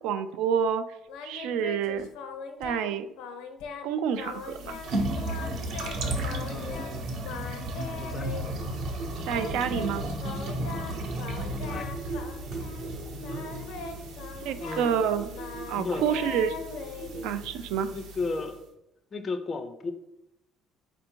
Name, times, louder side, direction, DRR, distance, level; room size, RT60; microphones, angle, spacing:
voice 1, 0.0-0.8 1.2-2.1 2.6-3.1 3.8-4.8 9.3-10.1 14.4-15.3 15.7-16.5 17.2-17.9, right 8 dB, 85° right, 11 dB, 0.3 m, -28 dB
Singing, 1.1-2.9 3.2-3.9 4.2-4.9 5.2-6.9 7.2-8.7 9.3-12.9 13.2-17.6, left 5 dB, 85° left, 0.6 m, -41 dB
sound 1, 4.3-18.6, right 1 dB, 60° right, 0.8 m, -34 dB
voice 2, 6.5-7.1 8.0-8.3 11.7-11.9 14.6-15.0 15.7-16.3 17.9-18.6 19.1-19.9, left 3 dB, 30° left, 8 dB, 0.3 m, -34 dB
4.3 x 2.6 x 4.3 m, 0.86 s
cardioid pair, 145°, 0 cm